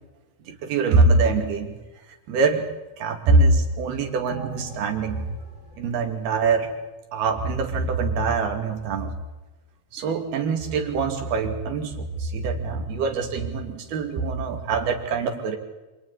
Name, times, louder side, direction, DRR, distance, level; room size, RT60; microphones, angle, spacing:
voice 1, 0.5-1.8 2.3-2.7 3.0-5.2 5.8-6.7 7.1-9.2 9.9-15.6, right 3 dB, 90° right, 4 dB, 4.5 m, -23 dB
sound 1, 4.3-7.2 7.5-7.6, right 4 dB, 20° left, 3.3 m, -41 dB
29.5 x 27.0 x 4.2 m, 1.1 s
omnidirectional pair, 4.3 m